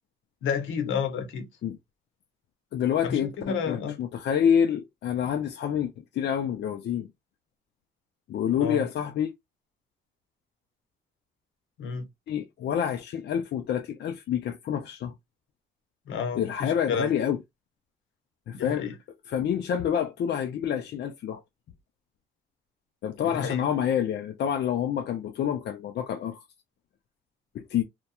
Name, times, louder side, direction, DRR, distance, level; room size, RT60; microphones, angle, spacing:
voice 1, 0.4-1.5 3.0-4.0 8.5-8.8 11.8-12.1 16.1-17.1 18.5-18.9 23.2-23.6, left 6 dB, 75° left, 0.9 m, -31 dB
voice 2, 2.7-7.1 8.3-9.3 12.3-15.1 16.3-17.4 18.5-18.9 19.3-21.4 23.0-26.4 27.5-27.8, left 9 dB, 60° left, 0.5 m, -27 dB
2.9 x 2.2 x 2.2 m
cardioid pair, 90°, 20 cm